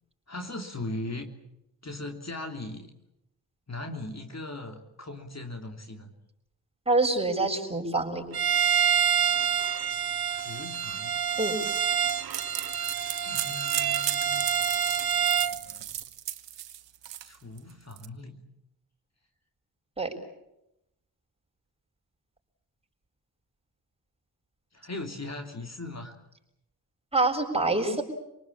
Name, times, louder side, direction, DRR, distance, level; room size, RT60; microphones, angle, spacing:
voice 1, 0.3-1.3 1.8-2.9 3.7-6.1 10.3-11.2 12.3-12.5 13.2-14.4 17.2-18.4 24.7-26.1, left 2 dB, 35° left, 3 dB, 3.3 m, -39 dB
voice 2, 6.9-8.2 11.4-11.5 20.0-20.1 27.1-28.0, right 2 dB, 15° right, 1 dB, 6.9 m, -25 dB
Bowed string instrument, 8.3-15.6, right 8 dB, 60° right, 1.2 m, -27 dB
sound 1, 11.6-18.1, right 11 dB, 85° right, 1.3 m, -36 dB
28.0 x 19.0 x 8.7 m, 0.85 s
supercardioid pair, 45°, 42 cm